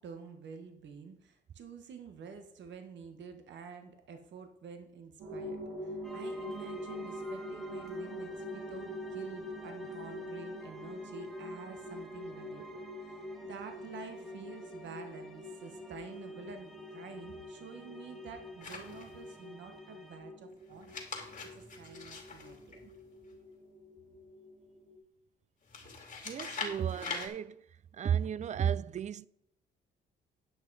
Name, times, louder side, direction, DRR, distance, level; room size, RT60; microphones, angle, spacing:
voice 1, 0.0-12.6 13.0-21.0 21.5-22.8, right 6 dB, 65° right, 1.3 m, -49 dB
sound 1, 5.2-25.0, left 1 dB, 80° right, 2.1 m, -44 dB
sound 2, 6.0-20.5, equal, ahead, 1.8 m, -53 dB
sound 3, 18.6-19.4 20.7-23.3 25.7-27.3, left 4 dB, 40° left, 2.4 m, -42 dB
voice 2, 26.2-27.6 27.9-29.3, right 8 dB, 35° right, 0.4 m, -33 dB
10.0 x 6.1 x 4.7 m
cardioid pair, 90°, 20 cm